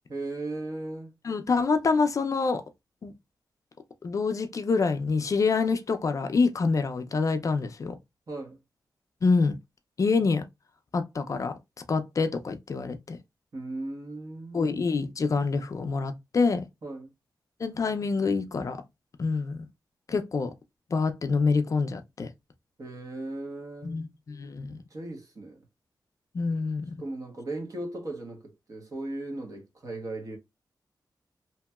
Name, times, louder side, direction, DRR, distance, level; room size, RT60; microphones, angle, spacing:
voice 1, 0.1-1.1 8.3-8.6 13.5-14.7 16.8-17.1 22.8-24.0 24.7-25.6 27.0-30.4, right 2 dB, 45° right, 1.0 m, -37 dB
voice 2, 1.2-2.6 3.0-3.1 4.0-8.0 9.2-9.6 10.0-10.4 10.9-11.6 11.9-13.2 14.5-16.7 17.6-18.8 19.2-19.6 20.1-20.5 20.9-22.3 23.8-24.8 26.3-26.9, left 4 dB, 45° left, 0.4 m, -26 dB
2.9 x 2.7 x 2.2 m
wide cardioid pair, 155°, 8 cm